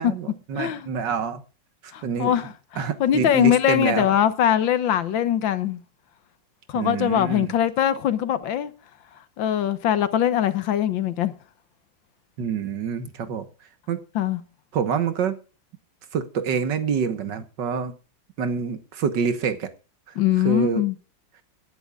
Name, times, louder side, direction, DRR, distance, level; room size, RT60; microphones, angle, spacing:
voice 1, 0.0-1.4 2.0-2.3 2.8-4.1 6.7-7.5 12.4-13.5 13.9-14.0 14.7-15.4 16.1-17.9 18.4-19.7 20.1-20.2 20.4-20.8, right 6 dB, 70° right, 1.9 m, -26 dB
voice 2, 0.6-0.9 1.9-5.8 6.7-8.7 9.4-11.3 14.2-14.4 20.2-21.0, left 10 dB, 90° left, 1.9 m, -22 dB
25.0 x 11.0 x 2.4 m
omnidirectional pair, 2.0 m